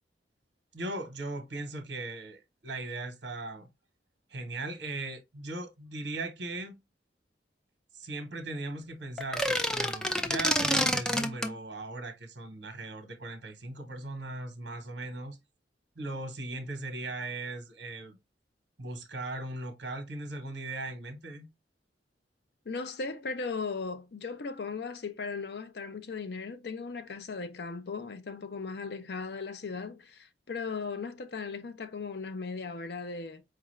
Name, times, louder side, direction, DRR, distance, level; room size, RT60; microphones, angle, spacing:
voice 1, 0.7-3.7 4.3-6.8 7.9-15.4 16.0-18.2 18.8-21.5, right 2 dB, 75° right, 0.9 m, -38 dB
sound 1, 9.2-11.5, equal, 5° left, 0.4 m, -28 dB
voice 2, 22.7-33.4, left 4 dB, 65° left, 0.5 m, -37 dB
4.7 x 2.4 x 3.1 m
head